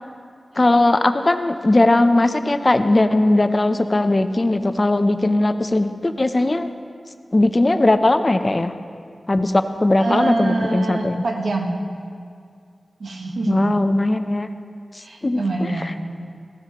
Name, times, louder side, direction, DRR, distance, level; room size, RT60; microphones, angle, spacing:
voice 1, 0.6-6.7 7.3-8.7 9.3-11.2 13.5-14.5 15.2-15.4, left 2 dB, 35° left, 9 dB, 0.6 m, -18 dB
voice 2, 10.0-11.8 13.0-13.8 15.0-16.1, right 2 dB, 85° right, 1 dB, 1.3 m, -25 dB
16.0 x 13.0 x 3.0 m, 2.2 s
wide cardioid pair, 80°, 0 cm